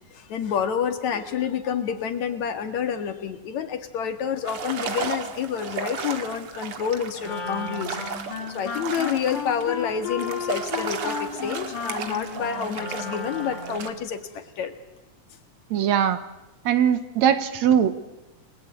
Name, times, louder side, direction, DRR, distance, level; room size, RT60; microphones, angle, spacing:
voice 1, 0.1-8.0 8.5-14.7, left 8 dB, 65° left, 8 dB, 3.0 m, -28 dB
sound 1, 4.4-13.9, right 6 dB, 50° right, 2.4 m, -34 dB
Wind instrument woodwind instrument, 7.2-13.8, left 5 dB, 90° left, 4.5 m, -34 dB
voice 2, 15.7-16.2 16.7-17.9, right 9 dB, 70° right, 12 dB, 2.3 m, -20 dB
29.5 x 20.5 x 8.3 m, 0.99 s
omnidirectional pair, 3.5 m